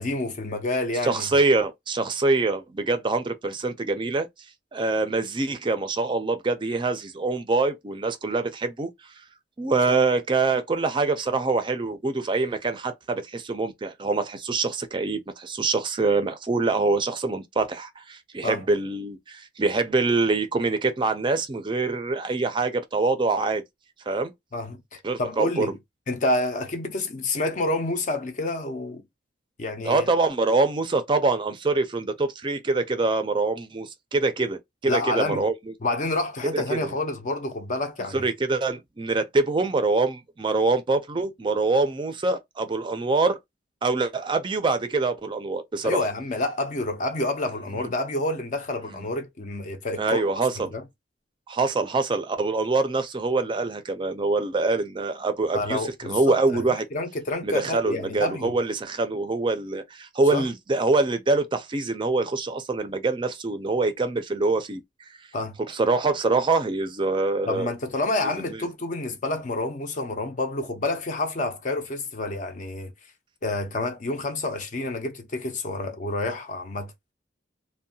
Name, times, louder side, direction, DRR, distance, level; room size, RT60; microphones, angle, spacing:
voice 1, 0.0-1.3 9.9-10.0 18.4-18.6 24.5-25.8 26.1-29.0 29.6-30.1 34.9-35.5 35.8-38.3 45.8-50.2 50.7-50.8 55.5-56.6 56.9-58.5 60.3-60.5 65.3-65.6 67.5-72.9 73.4-76.9, left 2 dB, 45° left, 0.5 m, -28 dB
voice 2, 1.0-4.3 4.7-8.9 9.6-23.6 24.1-24.3 25.0-25.7 29.8-35.7 36.5-36.8 38.1-43.4 43.8-46.0 47.8-47.9 50.0-50.7 51.5-56.9 57.4-64.8 65.7-67.7 68.2-68.7, right 3 dB, 25° right, 0.4 m, -25 dB
2.7 x 2.1 x 2.6 m
head